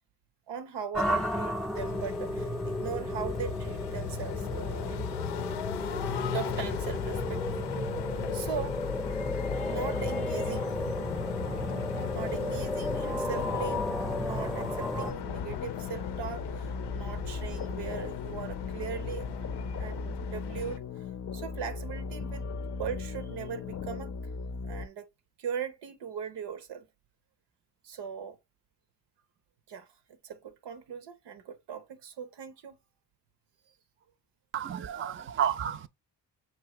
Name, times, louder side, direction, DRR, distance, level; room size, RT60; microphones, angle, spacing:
voice 1, 0.5-5.1 6.3-7.9 8.3-8.8 9.6-10.7 12.1-19.3 19.8-20.8 21.3-22.5 22.8-24.1 24.6-25.1 25.4-26.9 27.8-28.4 29.7-32.8, right 7 dB, 85° right, 0.8 m, -39 dB
sound 1, 0.9-15.1, left 1 dB, ahead, 0.7 m, -33 dB
sound 2, 1.7-20.8, left 9 dB, 85° left, 0.6 m, -37 dB
sound 3, 15.2-24.9, left 4 dB, 40° left, 0.5 m, -37 dB
voice 2, 34.5-35.9, right 9 dB, 30° right, 0.4 m, -31 dB
6.1 x 2.7 x 3.0 m
cardioid pair, 60°, 40 cm